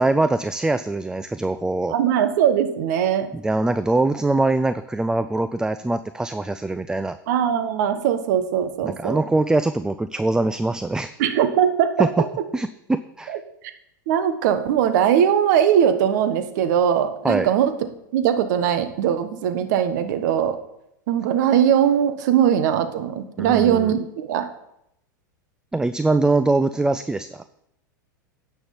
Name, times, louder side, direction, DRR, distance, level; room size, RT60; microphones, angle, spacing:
voice 1, 0.0-1.9 3.3-7.2 8.8-11.2 12.0-12.1 12.5-13.4 17.2-17.5 23.4-23.9 25.7-27.4, right 2 dB, 5° right, 12 dB, 0.4 m, -23 dB
voice 2, 1.9-3.3 7.3-9.2 11.2-12.1 13.3-13.4 14.1-17.7 18.1-20.6 21.1-24.5, right 9 dB, 65° right, 9 dB, 1.3 m, -20 dB
10.0 x 6.3 x 7.2 m, 0.79 s
hypercardioid pair, 110°, 10 cm